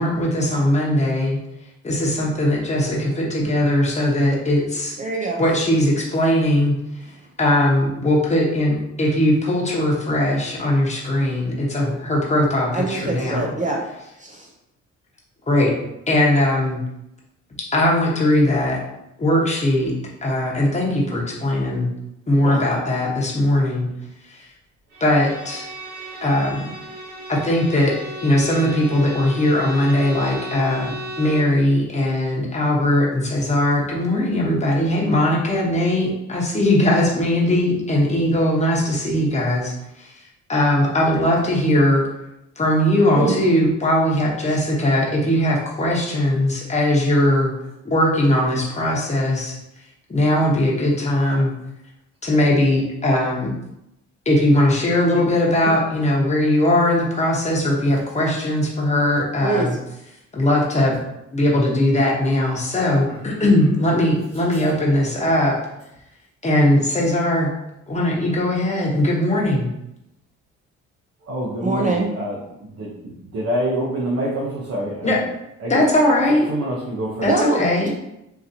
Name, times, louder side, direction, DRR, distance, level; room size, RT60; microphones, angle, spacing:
voice 1, 0.0-1.4 1.8-5.0 5.4-6.7 7.4-13.5 15.5-15.7 16.1-16.8 17.7-18.8 19.2-19.9 20.2-21.9 22.3-23.9 25.0-25.7 26.2-26.7 27.3-40.1 40.5-42.1 42.6-47.5 47.8-49.6 50.1-51.5 52.2-53.5 54.2-59.8 60.3-61.0 61.3-65.6 66.4-67.5 67.9-69.7 75.0-75.2 75.7-76.5 77.2-77.9, left 1 dB, 20° left, -3 dB, 1.1 m, -19 dB
voice 2, 5.0-5.4 12.7-13.8 14.2-14.5 22.4-22.6 43.1-43.4 55.6-55.7 59.4-59.7 71.6-72.1 77.3-77.9, right 3 dB, 25° right, -1 dB, 0.5 m, -24 dB
Bowed string instrument, 24.9-31.6, equal, 70° right, 1.4 m, -35 dB
voice 3, 63.1-63.4 71.2-75.2 75.6-76.1 76.5-77.3, right 1 dB, 55° right, -4 dB, 0.9 m, -27 dB
3.8 x 2.8 x 2.7 m, 0.86 s
cardioid pair, 90°, 30 cm